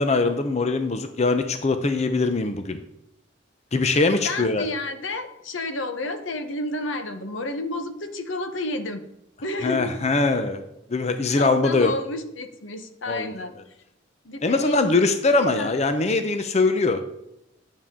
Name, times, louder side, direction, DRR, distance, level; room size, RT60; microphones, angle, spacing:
voice 1, 0.0-2.8 3.7-4.7 9.6-10.6 10.9-11.9 13.1-13.3 14.4-17.0, left 3 dB, 35° left, 8 dB, 0.6 m, -22 dB
voice 2, 4.2-9.0 9.4-10.0 11.3-13.5 14.2-15.0 15.5-15.7, left 1 dB, 80° left, 8 dB, 1.0 m, -30 dB
10.5 x 7.3 x 3.7 m, 0.85 s
head